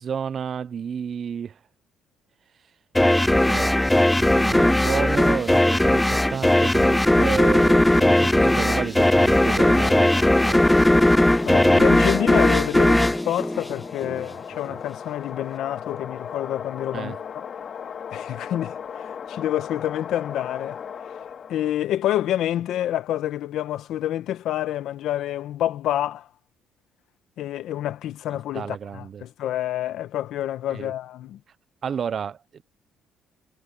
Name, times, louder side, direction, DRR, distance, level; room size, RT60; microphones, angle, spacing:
voice 1, 0.0-1.6 3.3-3.8 4.2-10.8 14.0-14.4 14.7-14.8 16.9-17.2 28.3-29.2 30.7-30.9 31.8-32.6, right 7 dB, 50° right, 0.9 m, -31 dB
sound 1, 3.0-14.2, left 1 dB, 10° left, 0.6 m, -18 dB
sound 2, 9.4-21.8, left 7 dB, 50° left, 3.8 m, -37 dB
voice 2, 11.4-17.4 18.1-20.8 21.5-26.3 27.4-31.4, left 12 dB, 70° left, 2.0 m, -28 dB
supercardioid pair, 80°, 0 cm